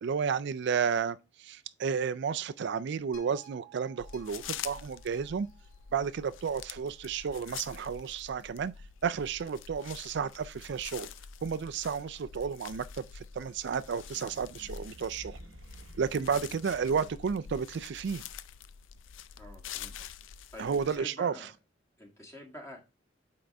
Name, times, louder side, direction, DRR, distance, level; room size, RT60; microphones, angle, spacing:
voice 1, 0.0-5.5 5.9-8.7 9.0-11.1 11.4-15.4 16.0-18.2 20.6-21.3, right 6 dB, 60° right, 0.4 m, -32 dB
sound 1, 3.1-7.5 8.1-8.2, right 6 dB, 45° left, 2.8 m, -58 dB
sound 2, 4.0-21.0, left 8 dB, 75° left, 0.4 m, -46 dB
sound 3, 13.3-17.6, right 2 dB, 80° right, 0.8 m, -54 dB
voice 2, 16.2-16.5 16.8-17.1 19.4-20.0 20.5-21.5 22.0-22.8, equal, 15° left, 1.8 m, -48 dB
9.1 x 3.8 x 3.4 m
head